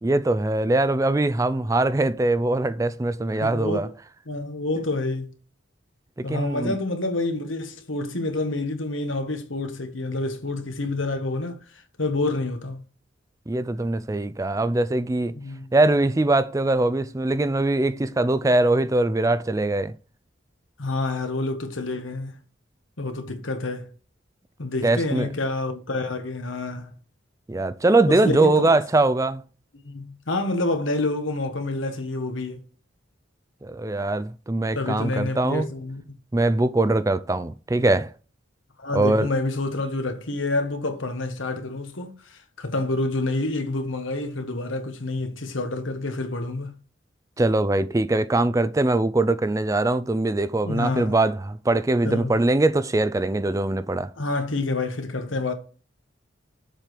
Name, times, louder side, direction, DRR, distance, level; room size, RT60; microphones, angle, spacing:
voice 1, 0.0-3.9 4.8-4.9 6.2-6.8 13.5-15.4 15.7-19.9 24.8-25.3 27.5-29.4 33.6-35.7 36.3-38.1 38.9-39.3 47.4-54.1, right 2 dB, 15° right, 0.4 m, -22 dB
voice 2, 3.4-3.9 4.3-5.3 6.2-11.6 12.0-12.8 15.3-15.7 20.8-22.3 23.0-23.9 24.6-26.9 28.1-28.8 29.8-32.6 34.7-36.0 38.8-46.8 50.6-51.1 52.0-52.4 54.2-55.5, left 2 dB, 80° left, 1.5 m, -28 dB
7.3 x 5.2 x 5.9 m
head